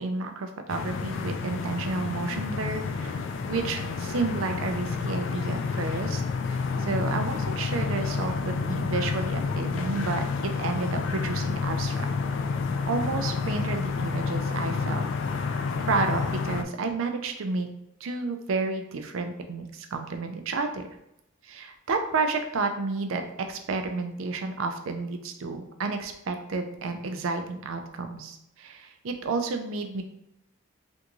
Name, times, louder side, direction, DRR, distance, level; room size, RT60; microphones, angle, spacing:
voice 1, 0.0-3.2 3.5-6.2 6.5-12.0 12.9-15.1 15.9-17.7 18.0-20.8 21.4-30.0, right 3 dB, 80° right, 6 dB, 0.4 m, -31 dB
sound 1, 0.7-16.6, left 4 dB, 65° left, 0.3 m, -29 dB
3.5 x 2.5 x 2.9 m, 0.84 s
head